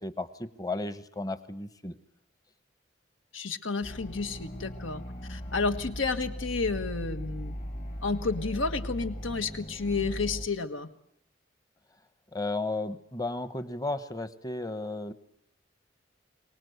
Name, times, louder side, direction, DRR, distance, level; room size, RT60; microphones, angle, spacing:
voice 1, 0.0-2.0 12.3-15.1, left 2 dB, 20° left, 12 dB, 0.9 m, -34 dB
voice 2, 3.3-5.0 5.3-7.5 8.0-10.9, left 4 dB, 85° left, 9 dB, 1.5 m, -31 dB
sound 1, 3.8-10.5, equal, 40° left, 1.7 m, -38 dB
24.0 x 19.0 x 8.0 m, 0.72 s
head